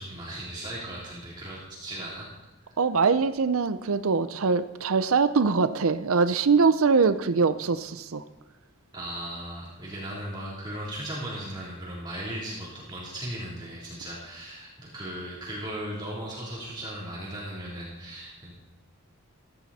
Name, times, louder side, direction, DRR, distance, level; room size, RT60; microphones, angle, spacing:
voice 1, 0.0-2.3 2.6-2.8 8.9-18.5, right 1 dB, 20° right, -7 dB, 3.3 m, -37 dB
voice 2, 2.8-8.2, right 4 dB, 75° right, 12 dB, 0.6 m, -23 dB
16.0 x 14.5 x 4.2 m, 1.1 s
head